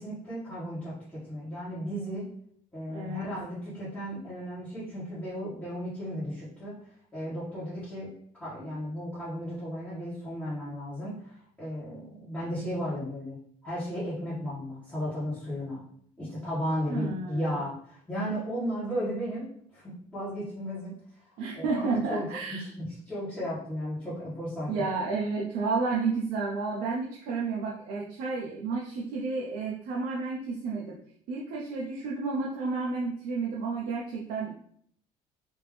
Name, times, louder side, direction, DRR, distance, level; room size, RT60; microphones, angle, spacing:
voice 1, 0.0-2.3 2.7-6.7 7.1-8.1 8.3-15.8 16.2-19.5 19.7-20.9 21.5-24.7, equal, 10° left, -13 dB, 1.3 m, -35 dB
voice 2, 2.9-3.3 16.9-17.6 21.4-22.7 24.7-31.0 31.3-34.5, right 4 dB, 80° right, -3 dB, 0.7 m, -31 dB
3.5 x 2.9 x 3.1 m, 0.62 s
cardioid pair, 170°, 15 cm